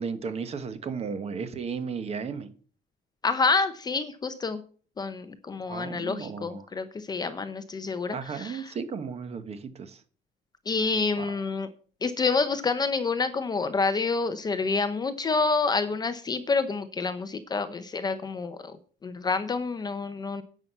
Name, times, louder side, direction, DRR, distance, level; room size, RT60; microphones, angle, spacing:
voice 1, 0.0-2.5 5.7-6.7 8.1-10.0 11.2-11.4, right 5 dB, 30° right, 1.1 m, -34 dB
voice 2, 3.2-4.6 5.0-8.7 10.7-11.7 12.0-18.8 19.0-20.4, left 4 dB, 20° left, 0.7 m, -28 dB
10.5 x 5.7 x 8.0 m
cardioid pair, 180°, 20 cm